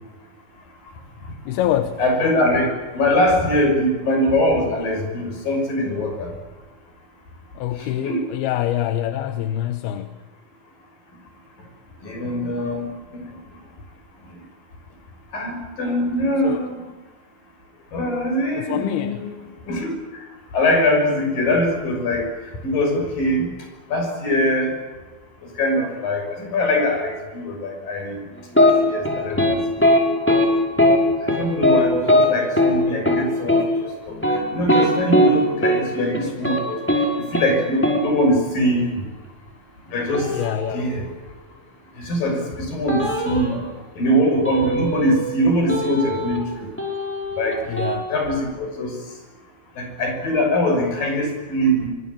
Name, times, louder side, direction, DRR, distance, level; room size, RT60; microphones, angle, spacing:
voice 1, 1.5-2.0 7.6-10.1 16.4-16.6 18.5-19.2 40.3-40.8 47.7-48.1, left 12 dB, 85° left, 2.9 m, -25 dB
voice 2, 2.0-6.3 7.8-8.2 12.0-12.9 13.1-13.2 15.3-16.8 17.9-19.4 19.7-19.9 20.5-22.3 22.6-23.5 23.9-24.7 25.6-28.2 28.6-29.6 31.2-34.2 34.5-36.8 37.3-39.0 39.9-40.3 40.7-41.0 42.0-43.6 44.0-46.7 47.4-47.6 48.1-48.9 49.8-51.9, left 1 dB, 65° left, 7.8 m, -22 dB
sound 1, 28.5-28.7 29.0-29.5 29.8-30.0 30.3-30.5 30.8-31.0 31.3-31.8 32.1-32.3 32.6-32.7 33.1-33.2 33.5-33.6 34.1-35.3 35.6-35.8 36.1-36.6 36.9-37.1 37.3-37.5 37.8-38.0 40.1-40.9 42.9-43.6 44.5-45.3 45.7-46.5 46.8-48.0, left 1 dB, 5° left, 5.4 m, -19 dB
25.0 x 23.0 x 8.8 m
omnidirectional pair, 4.3 m